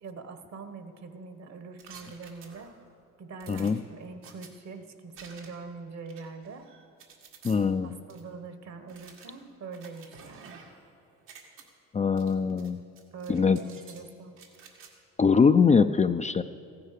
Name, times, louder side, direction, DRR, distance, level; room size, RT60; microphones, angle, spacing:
voice 1, 0.0-2.7 3.2-6.7 7.8-10.6 13.1-14.4, right 4 dB, 55° right, 9 dB, 1.4 m, -43 dB
sound 1, 1.8-2.9 3.4-4.5 5.1-5.7 6.1-7.6 8.1-8.2 8.9-10.9 11.1-11.6 12.2-12.7 13.0-14.0 14.4-14.9, right 6 dB, 85° right, 2.0 m, -51 dB
voice 2, 3.5-3.8 7.4-7.9 11.9-12.8 13.3-13.6 15.2-16.4, left 5 dB, 25° left, 9 dB, 0.4 m, -22 dB
15.0 x 9.6 x 6.6 m, 2.5 s
supercardioid pair, 75°, 31 cm